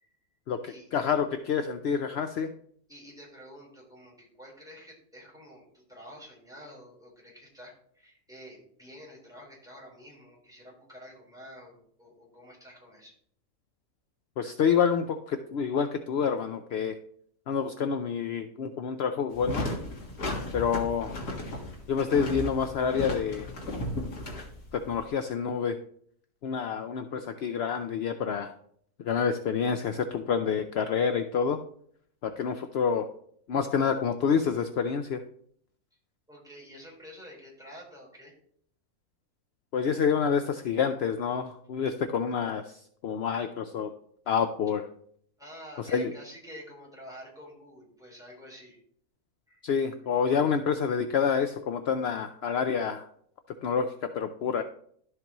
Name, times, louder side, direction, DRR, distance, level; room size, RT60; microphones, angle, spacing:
voice 1, 0.5-2.5 14.4-17.0 17.5-19.7 20.5-21.1 21.9-23.5 24.7-25.8 26.4-28.5 29.0-31.6 32.2-33.1 33.5-35.2 39.7-43.9 44.3-44.8 45.8-46.1 49.6-53.1 53.6-54.6, left 6 dB, 60° left, 7 dB, 0.6 m, -28 dB
voice 2, 2.9-13.2 36.3-38.3 45.4-48.8 49.5-49.6, equal, ahead, -4 dB, 4.1 m, -49 dB
sound 1, 19.3-25.0, left 1 dB, 80° left, 2.2 m, -35 dB
12.0 x 7.8 x 3.0 m, 0.63 s
omnidirectional pair, 1.6 m